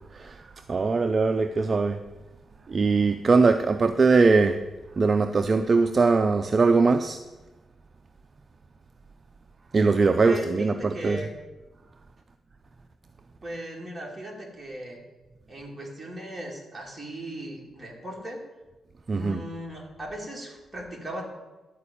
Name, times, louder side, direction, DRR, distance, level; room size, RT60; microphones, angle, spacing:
voice 1, 0.1-2.0 2.7-4.6 5.0-7.2 9.7-11.2 19.1-19.4, right 4 dB, 30° right, 8 dB, 0.4 m, -21 dB
voice 2, 10.2-11.3 13.4-15.0 15.5-18.4 19.1-21.3, right 1 dB, 10° right, -2 dB, 2.2 m, -37 dB
11.5 x 4.9 x 8.4 m, 1.1 s
wide cardioid pair, 145°, 0 cm